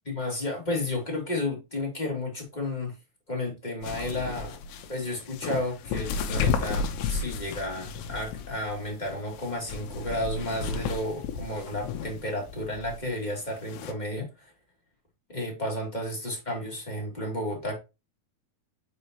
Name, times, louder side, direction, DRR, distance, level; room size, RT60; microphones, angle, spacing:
voice 1, 0.0-2.9 3.3-4.6 4.9-14.5 15.3-17.7, left 1 dB, 15° left, 2.1 m, -32 dB
sound 1, 3.8-13.9, left 5 dB, 80° left, 2.8 m, -33 dB
6.8 x 5.5 x 3.0 m
omnidirectional pair, 4.6 m